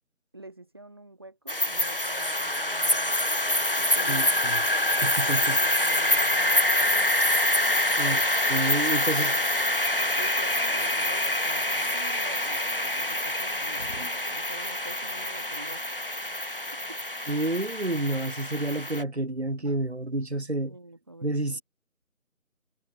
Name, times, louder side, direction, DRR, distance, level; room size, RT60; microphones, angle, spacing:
voice 1, 0.3-3.1 4.0-4.3 4.9-7.1 9.1-9.8 10.2-15.8 16.7-17.0 20.6-21.6, right 2 dB, 15° right, 5.7 m, -46 dB
sound 1, 1.5-19.0, left 1 dB, 40° left, 1.9 m, -26 dB
voice 2, 4.1-4.6 5.0-5.6 8.0-9.3 13.9-14.1 17.3-20.8 21.2-21.6, right 2 dB, 50° right, 2.1 m, -29 dB
figure-of-eight pair, 175°, 43 cm